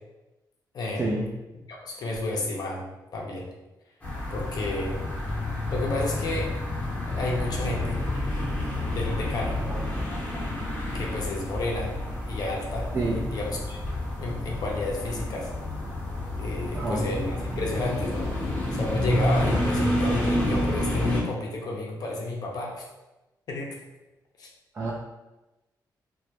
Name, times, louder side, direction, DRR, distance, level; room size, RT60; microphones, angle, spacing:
voice 1, 0.7-1.1 1.9-2.8 3.1-3.5 4.3-5.0 5.7-6.5 7.1-8.0 8.9-9.6 10.9-11.9 12.3-13.8 14.2-15.5 16.4-22.8 23.5-23.7 24.4-24.5, left 2 dB, 60° left, -1 dB, 0.5 m, -31 dB
sound 1, 4.0-21.2, left 1 dB, 20° left, 0.7 m, -29 dB
voice 2, 12.9-13.3 16.7-17.0 24.7-24.9, right 2 dB, 35° right, -4 dB, 0.3 m, -28 dB
2.1 x 2.1 x 2.8 m, 1.0 s
cardioid pair, 120°, 8 cm